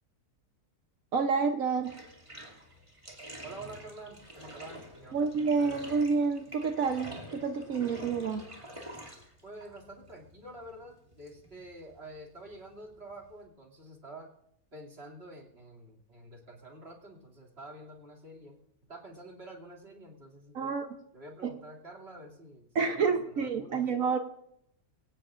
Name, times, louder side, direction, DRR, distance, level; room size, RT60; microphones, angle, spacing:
voice 1, 1.1-1.9 5.1-8.4 20.5-20.9 21.4-21.5 22.7-24.2, right 5 dB, 65° right, 6 dB, 1.3 m, -29 dB
Bathtub (filling or washing), 1.8-13.4, equal, 20° right, 2.5 m, -48 dB
voice 2, 3.4-5.3 9.4-14.3 14.7-20.8 21.1-23.9, right 1 dB, 40° right, -1 dB, 2.9 m, -48 dB
24.0 x 17.0 x 2.5 m, 0.75 s
omnidirectional pair, 1.6 m